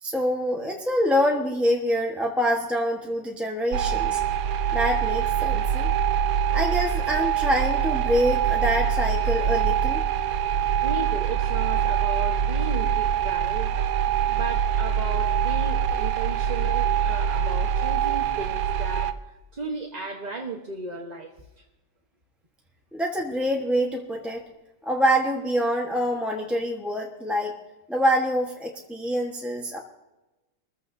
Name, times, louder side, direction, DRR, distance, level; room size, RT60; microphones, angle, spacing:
voice 1, 0.0-4.2 4.7-5.9 6.5-10.0 22.9-24.4 24.8-27.6 27.9-29.8, equal, ahead, -1 dB, 0.9 m, -25 dB
sound 1, 3.7-19.1, right 8 dB, 60° right, 1.0 m, -24 dB
voice 2, 10.8-21.6, right 3 dB, 30° right, -1 dB, 0.9 m, -35 dB
24.0 x 14.5 x 2.7 m, 1.1 s
omnidirectional pair, 1.9 m